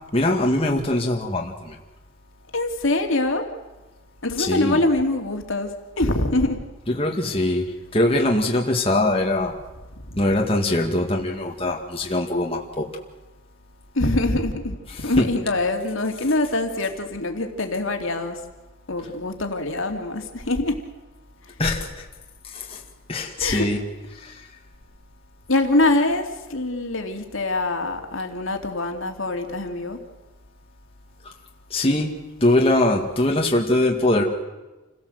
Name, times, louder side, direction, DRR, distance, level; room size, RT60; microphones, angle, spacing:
voice 1, 0.1-1.8 4.4-4.8 6.9-9.5 10.2-12.9 15.0-15.3 21.6-22.1 22.4-22.8 23.1-23.8 24.1-24.5 31.2-31.3 31.7-32.1 32.4-34.2, left 1 dB, 25° left, 0 dB, 2.1 m, -22 dB
voice 2, 2.5-3.5 4.2-5.7 6.0-6.6 10.1-10.2 13.9-18.4 18.9-20.8 23.4-23.7 25.5-30.0, left 2 dB, 65° left, 5 dB, 2.7 m, -24 dB
28.5 x 17.0 x 7.9 m, 1.2 s
head